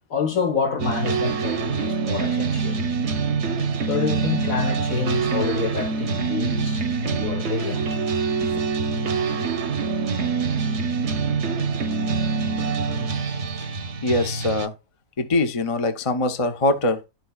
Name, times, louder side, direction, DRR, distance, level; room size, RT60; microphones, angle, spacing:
voice 1, 0.1-2.8 3.9-7.8 8.4-8.6, left 5 dB, 60° left, 1.8 m, -27 dB
sound 1, 0.8-14.7, right 5 dB, 50° right, 1.0 m, -25 dB
voice 2, 14.0-14.7 15.2-17.0, left 2 dB, 30° left, 0.7 m, -23 dB
13.0 x 4.7 x 2.4 m
omnidirectional pair, 1.7 m